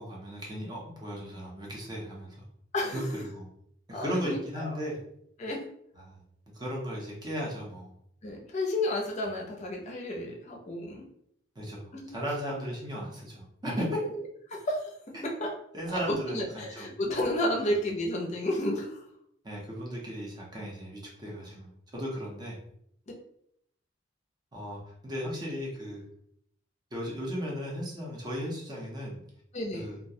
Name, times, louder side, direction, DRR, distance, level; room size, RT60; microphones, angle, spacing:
voice 1, 0.0-2.4 2.9-3.5 3.9-5.0 6.0-6.2 6.5-7.9 11.6-14.0 15.1-15.3 15.7-16.9 17.6-17.7 19.4-22.6 24.5-26.0 26.9-29.2 29.7-30.0, equal, 20° right, -3 dB, 0.6 m, -36 dB
voice 2, 3.9-4.7 5.4-5.6 8.2-11.1 12.0-12.1 14.5-14.8 15.2-15.5 15.9-19.0 29.5-29.9, left 1 dB, 40° left, 0 dB, 0.5 m, -31 dB
2.3 x 2.1 x 2.7 m, 0.71 s
head